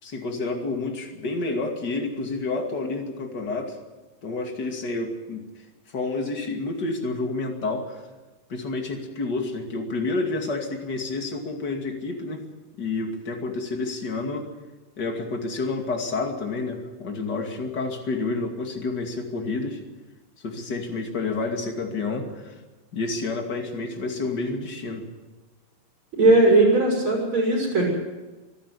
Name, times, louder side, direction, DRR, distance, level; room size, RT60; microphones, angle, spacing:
voice 1, 0.0-3.8 4.2-5.4 5.9-8.0 8.5-12.4 12.8-14.5 15.0-19.8 20.4-22.6 22.9-25.1, left 3 dB, 30° left, 3 dB, 2.4 m, -29 dB
voice 2, 26.1-27.9, right 2 dB, 30° right, -1 dB, 7.3 m, -18 dB
24.0 x 11.5 x 9.9 m, 1.2 s
omnidirectional pair, 4.3 m